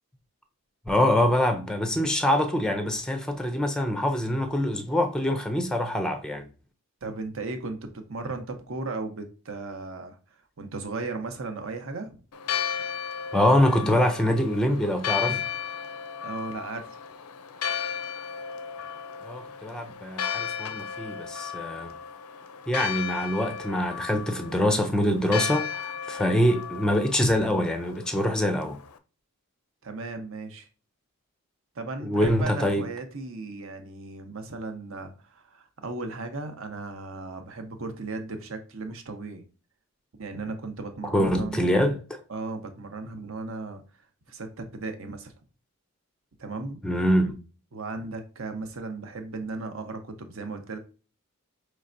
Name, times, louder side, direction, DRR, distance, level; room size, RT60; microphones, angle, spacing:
voice 1, 0.9-6.4 13.3-15.4 19.2-21.9 22.7-28.8 32.0-32.8 41.1-42.2 46.8-47.4, left 1 dB, 5° left, 0.4 m, -24 dB
voice 2, 7.0-10.2 10.6-12.2 16.2-17.0 29.8-30.7 31.7-39.4 40.2-42.0 42.3-43.8 44.3-45.3 46.4-46.8 47.7-50.8, right 3 dB, 60° right, 0.8 m, -36 dB
Church bell, 12.3-29.0, left 8 dB, 85° left, 0.5 m, -35 dB
5.4 x 3.2 x 2.6 m
head